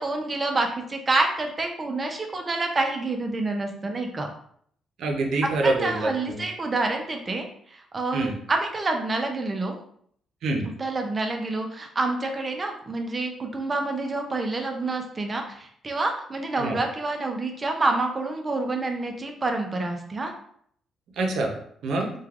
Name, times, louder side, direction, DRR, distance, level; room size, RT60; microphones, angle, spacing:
voice 1, 0.0-4.3 5.6-9.8 10.8-20.3, right 2 dB, 30° right, 3 dB, 0.5 m, -28 dB
voice 2, 5.0-6.4 8.1-8.3 10.4-10.7 16.6-16.8 21.2-21.5 21.8-22.1, right 2 dB, 75° right, 1 dB, 0.6 m, -25 dB
3.1 x 2.2 x 2.4 m, 0.63 s
cardioid pair, 90°, 0 cm